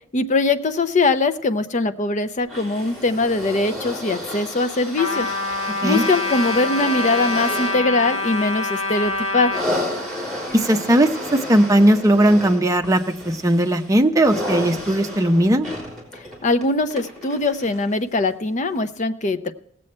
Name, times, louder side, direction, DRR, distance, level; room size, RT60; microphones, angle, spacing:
voice 1, 0.1-5.3 5.8-9.6 16.4-19.5, left 3 dB, 40° left, 10 dB, 0.6 m, -21 dB
sound 1, 2.5-17.9 18.7-18.8, left 1 dB, ahead, 3.5 m, -32 dB
Trumpet, 5.0-9.6, left 2 dB, 75° left, 1.4 m, -25 dB
voice 2, 10.5-13.0 13.3-15.7, right 1 dB, 15° right, 4 dB, 0.7 m, -17 dB
17.5 x 7.7 x 4.3 m, 0.72 s
head